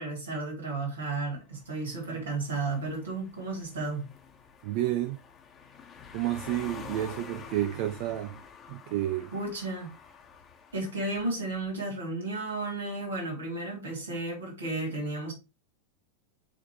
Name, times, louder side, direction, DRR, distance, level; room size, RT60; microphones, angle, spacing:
voice 1, 0.0-4.1 9.3-9.9 10.7-15.3, right 2 dB, 65° right, 2.6 m, -33 dB
sound 1, 1.4-11.7, left 6 dB, 25° left, 1.2 m, -49 dB
voice 2, 4.6-5.2 6.1-8.4 8.7-9.3, right 14 dB, 45° right, 0.5 m, -30 dB
8.7 x 3.6 x 3.0 m
figure-of-eight pair, 90°, 0 cm